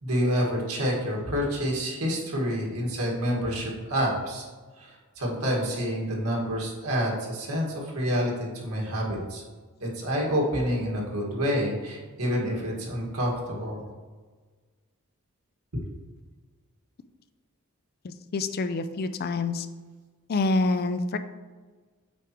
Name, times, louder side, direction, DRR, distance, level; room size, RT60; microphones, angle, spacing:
voice 1, 0.0-4.4 4.8-9.4 9.8-13.9, equal, 85° right, -2 dB, 1.8 m, -28 dB
voice 2, 18.0-19.7 20.3-21.2, left 3 dB, 45° left, 11 dB, 0.4 m, -27 dB
8.2 x 4.8 x 3.0 m, 1.4 s
head